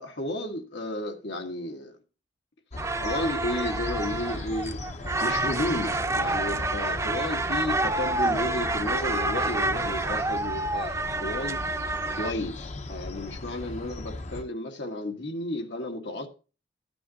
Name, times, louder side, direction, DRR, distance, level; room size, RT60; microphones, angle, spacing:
voice 1, 0.0-1.9 3.0-4.8 5.2-11.6 12.1-16.3, left 1 dB, 80° left, 1.6 m, -33 dB
sound 1, 2.7-14.4, left 2 dB, 40° left, 0.7 m, -38 dB
sound 2, 2.8-12.3, right 2 dB, 15° right, 0.6 m, -28 dB
13.0 x 9.8 x 2.8 m
head